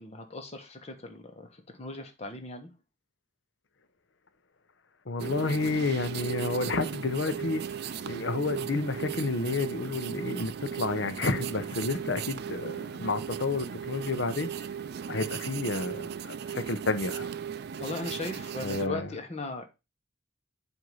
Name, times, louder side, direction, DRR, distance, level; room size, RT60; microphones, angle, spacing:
voice 1, 0.0-2.7 17.8-19.7, left 2 dB, 35° left, 1.1 m, -38 dB
voice 2, 5.1-14.7 15.1-17.3 18.6-19.1, left 3 dB, 65° left, 0.7 m, -30 dB
sound 1, 5.2-18.9, right 8 dB, 55° right, 0.4 m, -37 dB
7.7 x 2.7 x 5.4 m
head